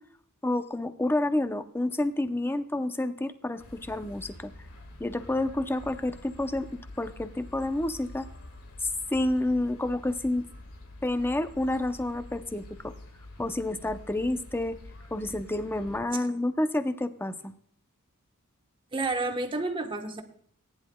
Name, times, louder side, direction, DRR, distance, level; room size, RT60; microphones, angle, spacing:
voice 1, 0.4-4.5 5.0-8.3 9.1-10.5 11.0-12.9 13.4-14.8 15.1-17.5, left 1 dB, 10° left, 9 dB, 0.7 m, -29 dB
sound 1, 3.6-16.0, left 1 dB, 75° left, 1.9 m, -47 dB
voice 2, 18.9-20.2, right 2 dB, 25° right, 5 dB, 1.2 m, -30 dB
18.5 x 10.5 x 2.3 m, 0.62 s
head